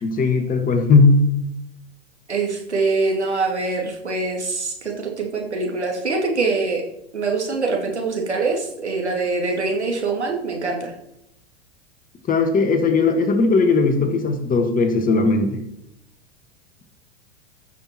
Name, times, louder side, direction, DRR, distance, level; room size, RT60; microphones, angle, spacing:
voice 1, 0.0-1.2 12.3-15.6, left 3 dB, 25° left, 5 dB, 1.9 m, -18 dB
voice 2, 2.3-6.8 7.1-10.9, right 3 dB, 85° right, 0 dB, 2.5 m, -24 dB
14.5 x 6.2 x 4.5 m, 0.82 s
figure-of-eight pair, 90°, 33 cm